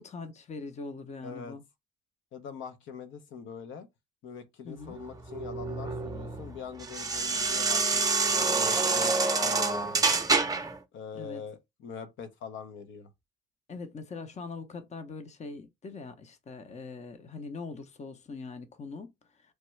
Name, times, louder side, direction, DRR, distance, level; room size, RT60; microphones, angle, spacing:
voice 1, 0.0-1.6 4.6-5.0 11.1-11.4 13.7-19.1, left 4 dB, 35° left, 0.6 m, -42 dB
voice 2, 1.2-1.6 2.3-3.9 4.2-10.2 10.9-13.1, left 6 dB, 75° left, 0.7 m, -43 dB
sound 1, 4.9-10.8, right 3 dB, 20° right, 0.5 m, -27 dB
3.2 x 2.2 x 3.1 m
cardioid pair, 90°, 20 cm